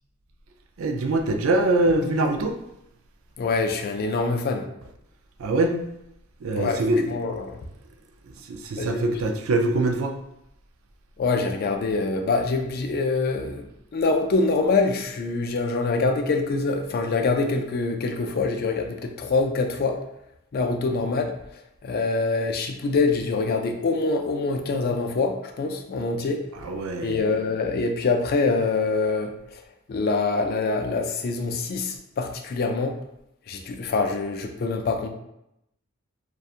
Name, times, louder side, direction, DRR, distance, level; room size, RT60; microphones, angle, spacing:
voice 1, 0.8-2.6 5.4-5.8 6.4-7.1 8.5-10.1 26.6-27.2, right 2 dB, 75° right, 5 dB, 0.4 m, -23 dB
voice 2, 3.4-4.7 6.5-6.8 7.1-7.6 8.8-9.0 11.2-13.6 13.9-20.0 20.5-21.3 21.8-26.4 27.0-29.3 29.9-32.9 33.5-35.1, left 3 dB, 45° left, 5 dB, 0.3 m, -25 dB
2.7 x 2.2 x 2.4 m, 0.82 s
head